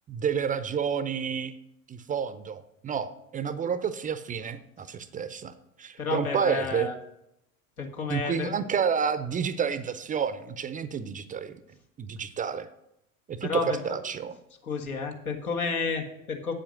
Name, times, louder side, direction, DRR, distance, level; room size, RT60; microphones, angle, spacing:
voice 1, 0.1-1.5 1.9-5.5 5.8-6.9 8.1-11.6 12.0-12.7 13.3-14.3, right 7 dB, 20° right, 13 dB, 0.5 m, -30 dB
voice 2, 6.0-6.9 7.8-8.5 13.4-14.0 14.6-16.5, left 4 dB, 85° left, 3 dB, 1.8 m, -31 dB
8.5 x 7.6 x 6.4 m, 0.83 s
figure-of-eight pair, 80°, 42 cm